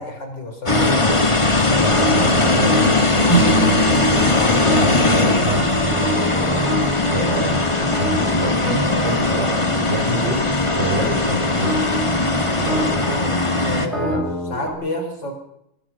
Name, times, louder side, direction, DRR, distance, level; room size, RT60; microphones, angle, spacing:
voice 1, 0.0-1.4 4.3-4.6 13.6-14.2 14.5-15.3, left 2 dB, 65° left, 4 dB, 5.0 m, -30 dB
sound 1, 0.7-13.9, left 2 dB, 15° left, 1.6 m, -19 dB
sound 2, 0.7-1.2 1.8-5.2 5.8-9.4 9.7-9.8 10.2-14.7, equal, ahead, 5.7 m, -27 dB
voice 2, 1.7-3.9 4.6-5.7 7.1-10.4 10.7-11.8 12.6-13.0 13.9-14.2, right 1 dB, 35° right, 0 dB, 7.4 m, -26 dB
Acoustic guitar / Strum, 3.3-8.1, right 2 dB, 80° left, 6.3 m, -26 dB
23.0 x 22.0 x 5.9 m, 0.79 s
omnidirectional pair, 2.1 m